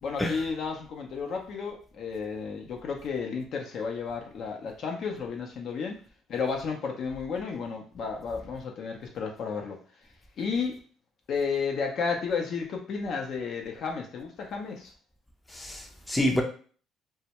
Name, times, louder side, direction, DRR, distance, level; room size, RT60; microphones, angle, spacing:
voice 1, 0.0-6.0 6.3-9.8 10.4-10.8 11.3-14.9, left 5 dB, 60° left, 2 dB, 0.6 m, -32 dB
voice 2, 15.5-16.4, left 1 dB, 15° left, 3 dB, 0.5 m, -28 dB
2.1 x 2.1 x 2.9 m, 0.42 s
supercardioid pair, 75°, 0 cm